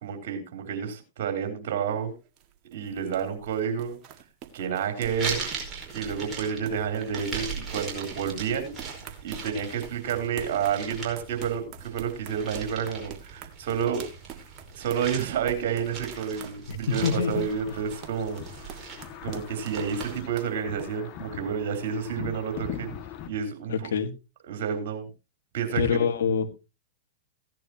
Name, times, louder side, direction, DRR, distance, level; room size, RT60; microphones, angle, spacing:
voice 1, 0.0-2.1 2.7-4.0 4.5-5.5 5.9-8.8 9.2-14.0 14.8-18.8 19.2-23.0 23.3-23.9 24.5-25.1 25.5-25.8, right 7 dB, 60° right, 6 dB, 3.6 m, -30 dB
sound 1, 1.8-20.9, right 9 dB, 40° right, 1.8 m, -46 dB
sound 2, 5.0-20.2, right 5 dB, 25° right, 4.9 m, -39 dB
sound 3, 16.9-23.3, left 9 dB, 40° left, 1.8 m, -41 dB
voice 2, 17.0-17.5 23.7-24.1 25.8-26.5, left 6 dB, 75° left, 8 dB, 1.7 m, -25 dB
16.0 x 10.5 x 2.9 m, 0.27 s
hypercardioid pair, 105°, 0 cm